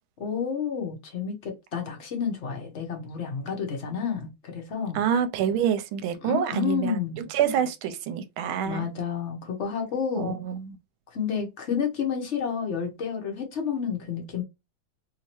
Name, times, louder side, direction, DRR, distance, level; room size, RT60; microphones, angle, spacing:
voice 1, 0.2-5.0 6.2-7.3 8.6-10.4 11.1-14.4, left 7 dB, 50° left, 0.9 m, -30 dB
voice 2, 4.9-7.0 7.3-8.9 10.1-10.8, right 8 dB, 85° right, 1.4 m, -27 dB
3.3 x 2.8 x 3.0 m
omnidirectional pair, 2.2 m